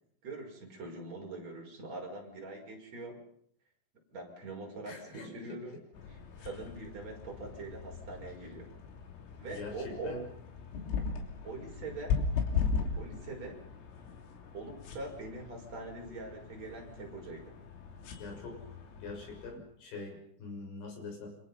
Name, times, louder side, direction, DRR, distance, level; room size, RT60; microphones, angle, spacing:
voice 1, 0.2-3.2 4.1-5.8 6.1-8.7 9.4-10.1 11.4-12.2 13.0-13.6 14.5-17.6, right 2 dB, 35° right, 0 dB, 6.7 m, -43 dB
voice 2, 4.9-5.6 9.5-10.2 18.2-18.7 19.0-21.4, left 3 dB, 65° left, 2 dB, 8.9 m, -43 dB
sound 1, 5.9-19.6, left 5 dB, 80° left, 5.7 m, -38 dB
30.0 x 26.0 x 5.6 m, 0.68 s
omnidirectional pair, 5.9 m